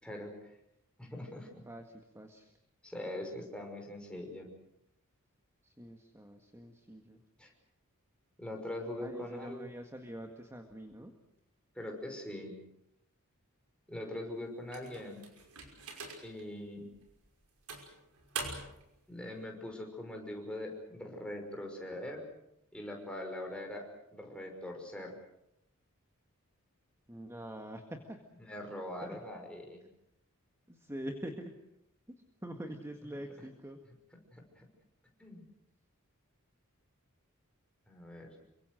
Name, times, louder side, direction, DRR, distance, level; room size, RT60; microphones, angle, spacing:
voice 1, 0.0-0.6 1.0-1.6 2.8-4.5 7.4-7.5 8.4-9.7 11.7-12.6 13.9-15.2 16.2-16.9 19.1-22.3 22.7-25.1 28.5-29.8 34.3-34.7 35.2-35.4 37.9-38.4, left 1 dB, 5° left, 1 dB, 5.8 m, -42 dB
voice 2, 1.7-2.5 5.6-7.2 9.0-11.1 27.1-28.2 29.0-29.2 30.7-31.5 32.4-33.8, right 1 dB, 15° right, 4 dB, 1.8 m, -45 dB
sound 1, 14.7-16.4 17.0-17.1 17.7-18.9, right 4 dB, 80° right, 5.7 m, -43 dB
28.0 x 24.0 x 6.5 m, 0.80 s
head